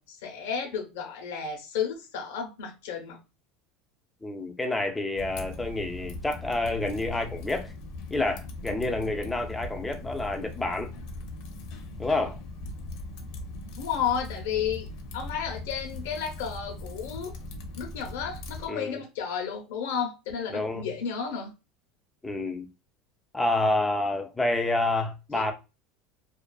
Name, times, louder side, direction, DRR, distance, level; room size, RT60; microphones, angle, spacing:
voice 1, 0.0-3.2 13.7-14.9 15.1-17.3 17.8-21.5 25.3-25.5, left 7 dB, 90° left, 0.8 m, -32 dB
voice 2, 4.2-7.7 8.1-10.9 12.0-12.4 18.7-19.0 20.5-20.9 22.2-22.7 23.3-25.5, left 2 dB, 5° left, 0.4 m, -28 dB
Typing, 5.2-18.7, left 2 dB, 60° left, 0.7 m, -40 dB
2.4 x 2.3 x 2.3 m
supercardioid pair, 155°, 0 cm